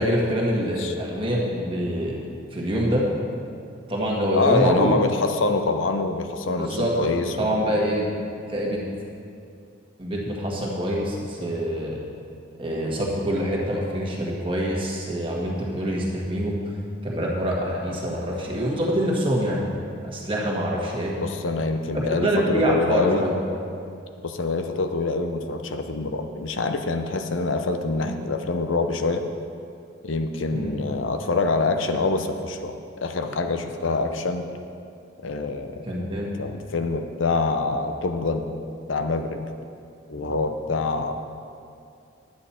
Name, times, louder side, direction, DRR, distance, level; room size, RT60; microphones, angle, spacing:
voice 1, 0.0-2.2 2.5-3.1 3.9-4.9 6.6-7.0 7.4-8.1 8.5-8.8 10.0-12.0 12.6-16.6 17.0-19.6 20.0-21.2 21.9-23.4 30.5-30.8 35.8-36.3, equal, 25° right, -3 dB, 1.6 m, -25 dB
voice 2, 4.3-7.6 21.2-23.3 24.2-29.2 30.0-34.4 35.2-35.7 36.4-38.5 38.9-39.4 40.1-41.1, left 3 dB, 80° left, 6 dB, 0.7 m, -25 dB
10.5 x 8.8 x 4.4 m, 2.4 s
head